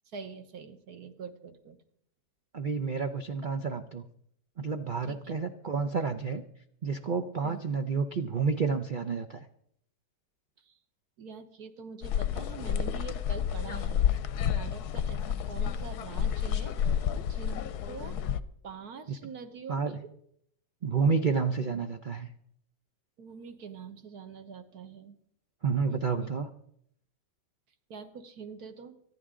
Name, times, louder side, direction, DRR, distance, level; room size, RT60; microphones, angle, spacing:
voice 1, 0.1-1.8 5.1-5.3 7.4-7.6 10.6-10.7 11.2-14.2 14.5-18.2 18.6-19.9 23.2-25.2 25.9-26.3 27.9-29.0, right 5 dB, 55° right, 8 dB, 1.6 m, -45 dB
voice 2, 2.5-4.0 4.6-6.4 6.8-9.4 19.1-19.2 19.7-20.0 20.8-22.3 25.6-26.5, right 5 dB, 90° right, 7 dB, 0.4 m, -30 dB
sound 1, 12.0-18.4, left 9 dB, 65° left, 1.1 m, -30 dB
25.0 x 10.5 x 3.8 m, 0.70 s
omnidirectional pair, 2.0 m